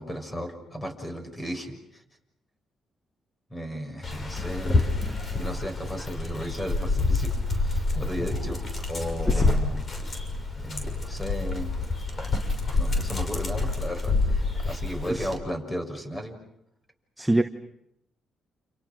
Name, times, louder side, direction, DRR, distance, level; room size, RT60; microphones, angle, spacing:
voice 1, 0.0-2.0 3.5-4.9 5.4-8.6 8.9-9.8 10.6-11.7 12.7-16.4, equal, 15° left, 6 dB, 6.6 m, -35 dB
Dog, 4.0-15.4, left 3 dB, 35° left, 6.3 m, -27 dB
voice 2, 9.3-9.4 15.1-15.3 17.2-17.4, right 1 dB, 5° right, 6 dB, 1.3 m, -24 dB
29.5 x 29.0 x 6.4 m, 0.76 s
cardioid pair, 90°, 0 cm